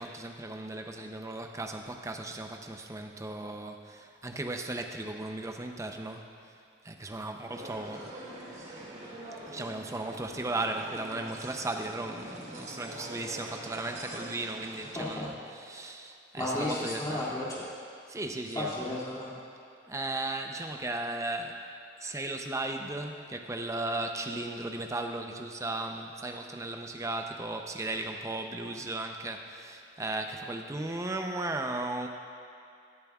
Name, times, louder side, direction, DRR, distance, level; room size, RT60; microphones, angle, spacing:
voice 1, 0.0-6.6 6.8-8.1 9.4-17.3 18.1-19.0 19.9-21.7 22.0-32.1, right 2 dB, 15° right, 4 dB, 0.6 m, -36 dB
sound 1, 7.5-15.1, right 1 dB, 35° right, 1.5 m, -44 dB
voice 2, 14.9-15.3 16.4-17.7 18.5-19.4, left 1 dB, 20° left, -8 dB, 2.3 m, -33 dB
16.5 x 10.5 x 2.4 m, 2.5 s
head